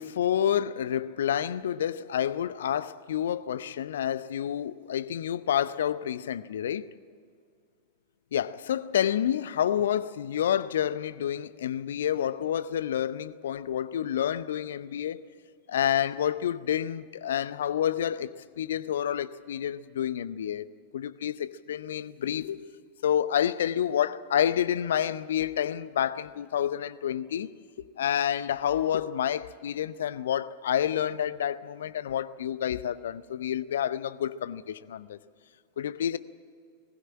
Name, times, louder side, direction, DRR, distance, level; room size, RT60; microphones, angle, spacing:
voice 1, 0.0-6.8 8.3-15.2 15.7-20.7 20.9-22.7 23.0-27.5 28.0-35.2 35.8-36.2, left 10 dB, 60° left, 0.6 m, -29 dB
19.5 x 16.0 x 8.7 m
figure-of-eight pair, 90°, 0 cm